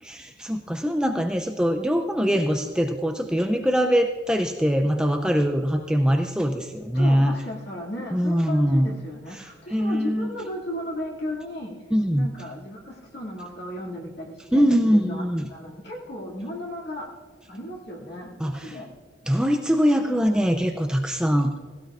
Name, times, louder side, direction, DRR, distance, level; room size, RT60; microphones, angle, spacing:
voice 1, 0.0-7.4 8.1-8.9 9.3-10.3 11.9-12.3 14.5-15.5 18.4-18.8 19.3-21.6, equal, 5° right, 4 dB, 0.4 m, -23 dB
voice 2, 6.9-11.7 12.1-17.1 17.5-18.3 18.6-18.9, left 1 dB, 55° left, -2 dB, 2.4 m, -35 dB
18.5 x 16.5 x 2.5 m, 1.5 s
head